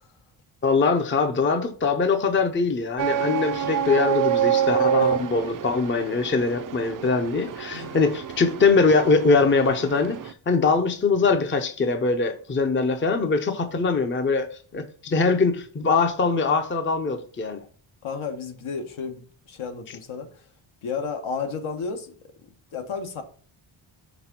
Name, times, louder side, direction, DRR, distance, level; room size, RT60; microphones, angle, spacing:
voice 1, 0.6-14.5 14.7-17.6, left 4 dB, 25° left, 0.6 m, -22 dB
sound 1, 3.0-10.3, right 9 dB, 45° right, 0.5 m, -27 dB
voice 2, 18.0-20.3 20.8-22.1 22.7-23.2, left 5 dB, 75° left, 1.3 m, -32 dB
6.0 x 3.6 x 5.9 m
wide cardioid pair, 160°, 49 cm